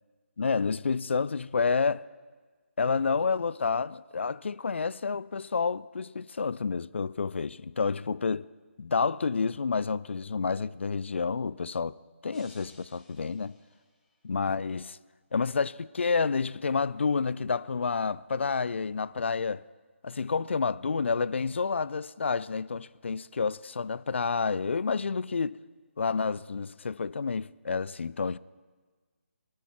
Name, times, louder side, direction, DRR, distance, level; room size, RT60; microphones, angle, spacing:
voice 1, 0.4-2.0 2.8-8.5 8.8-12.0 12.2-13.6 14.2-15.0 15.3-19.6 20.0-25.6 26.0-28.4, left 5 dB, 60° left, 0.4 m, -29 dB
sound 1, 12.3-14.4, left 1 dB, 5° left, 2.0 m, -59 dB
22.5 x 13.0 x 4.6 m
figure-of-eight pair, 145°, 7 cm